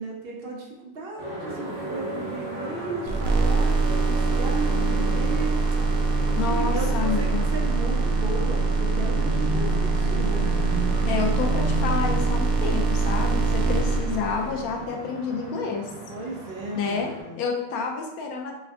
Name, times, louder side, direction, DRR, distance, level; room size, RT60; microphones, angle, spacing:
voice 1, 0.0-5.6 5.8-10.5 16.1-17.4, right 2 dB, 65° right, -1 dB, 0.6 m, -35 dB
sound 1, 1.2-17.2, right 1 dB, 40° right, 1.3 m, -35 dB
sound 2, 3.1-14.7, right 3 dB, 80° right, 1.0 m, -23 dB
voice 2, 6.4-7.4 11.1-15.9 16.7-17.1 17.4-18.6, left 5 dB, 90° left, 1 dB, 1.1 m, -29 dB
3.4 x 2.4 x 3.4 m, 1.0 s
omnidirectional pair, 1.5 m